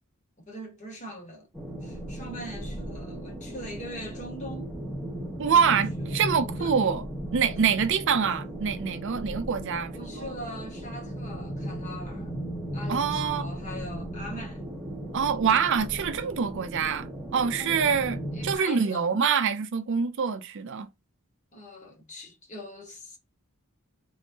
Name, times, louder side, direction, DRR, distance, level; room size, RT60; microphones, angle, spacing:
voice 1, 0.4-1.5 1.8-4.7 5.6-6.2 6.5-6.7 7.4-7.5 9.9-12.3 12.7-14.6 17.6-18.0 18.3-19.1 21.5-23.2, equal, 35° left, 1.4 m, -42 dB
sound 1, 1.5-18.6, right 1 dB, 5° left, 1.1 m, -36 dB
voice 2, 5.4-7.0 7.3-10.3 12.9-13.5 15.1-20.9, right 6 dB, 60° right, 0.5 m, -25 dB
3.9 x 3.5 x 2.7 m
head